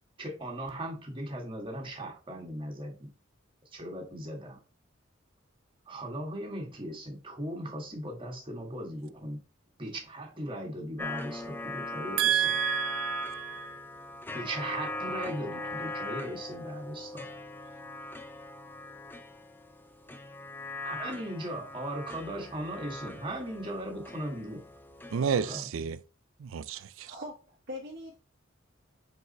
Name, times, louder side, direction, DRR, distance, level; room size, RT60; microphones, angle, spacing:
voice 1, 0.2-3.1 3.7-4.6 5.9-9.4 9.8-12.5 14.3-17.3 20.8-24.7 25.3-25.7, right 1 dB, 25° right, 1.7 m, -38 dB
sound 1, 11.0-25.6, left 2 dB, 10° left, 0.6 m, -40 dB
voice 2, 12.2-13.7 25.1-26.0 26.4-27.1, right 9 dB, 70° right, 0.4 m, -30 dB
voice 3, 27.0-28.2, left 1 dB, 50° right, 1.1 m, -42 dB
4.8 x 4.7 x 4.1 m
head